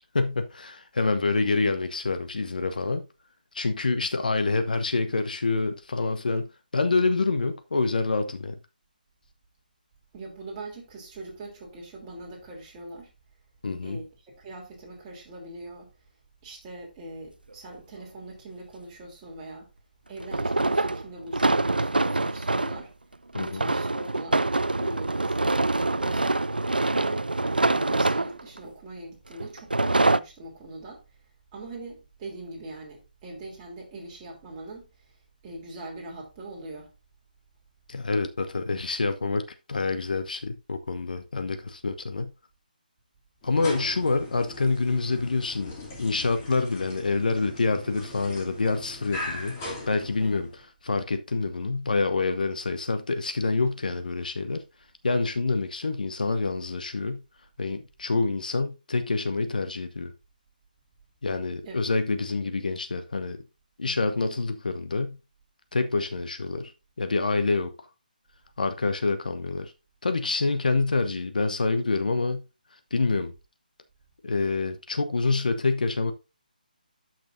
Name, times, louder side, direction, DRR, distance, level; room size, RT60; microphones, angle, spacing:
voice 1, 0.1-3.1 3.5-6.5 6.7-8.6 13.6-14.0 23.3-23.6 37.9-39.4 39.7-42.3 43.4-49.6 49.9-50.5 50.8-54.6 55.0-57.2 57.6-60.1 61.2-63.4 63.8-65.2 65.7-66.7 67.0-67.7 68.6-69.7 70.0-72.4 72.9-73.3 74.2-76.1, left 3 dB, 65° left, 1.0 m, -27 dB
voice 2, 1.4-1.8 10.1-13.1 13.8-15.9 16.4-19.7 20.1-22.9 23.4-25.6 26.0-26.4 26.9-31.0 31.5-34.8 35.4-36.9 50.2-50.4 61.6-61.8, right 2 dB, 20° right, 3.1 m, -42 dB
sound 1, 17.5-17.6 20.2-22.8 23.3-28.6 29.4-30.2, right 2 dB, 85° right, 0.4 m, -25 dB
sound 2, 43.4-50.6, left 2 dB, 25° left, 2.8 m, -40 dB
12.0 x 6.1 x 2.6 m
figure-of-eight pair, 150°, 5 cm